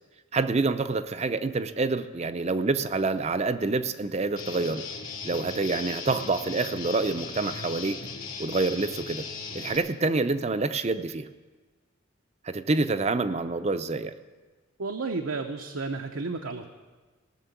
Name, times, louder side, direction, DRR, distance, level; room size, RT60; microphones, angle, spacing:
voice 1, 0.3-4.8 5.2-8.1 8.4-9.2 9.5-11.3 12.4-14.1, right 3 dB, 30° right, 11 dB, 0.5 m, -27 dB
Guitar, 4.4-9.8, left 4 dB, 85° left, 2.2 m, -38 dB
voice 2, 14.8-16.7, right 3 dB, 80° right, 3 dB, 0.8 m, -32 dB
18.0 x 6.8 x 8.2 m, 1.3 s
head